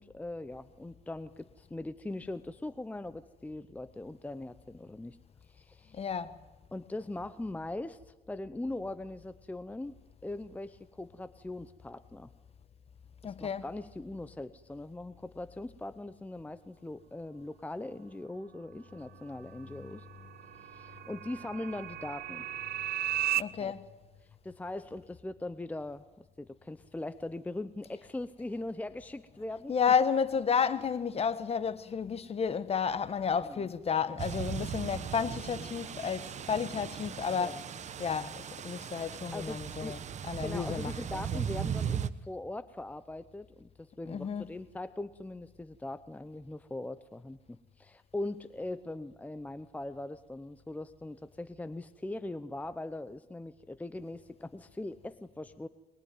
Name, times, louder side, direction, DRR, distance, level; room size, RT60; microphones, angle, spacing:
voice 1, 0.0-5.2 5.5-6.0 6.7-9.9 10.2-12.3 13.2-20.1 20.5-22.5 23.6-23.7 24.4-29.7 33.3-33.7 37.4-37.6 39.3-40.0 40.4-55.7, left 2 dB, 10° left, 0.8 m, -41 dB
voice 2, 5.9-6.3 13.2-13.6 23.4-23.8 29.7-37.6 38.0-40.0 40.3-40.9 44.1-44.5, left 6 dB, 35° left, 1.4 m, -31 dB
sound 1, 19.1-23.4, right 12 dB, 60° right, 0.8 m, -36 dB
sound 2, 34.2-42.1, right 8 dB, 45° right, 1.1 m, -38 dB
23.0 x 21.5 x 9.3 m
cardioid pair, 110°, 17 cm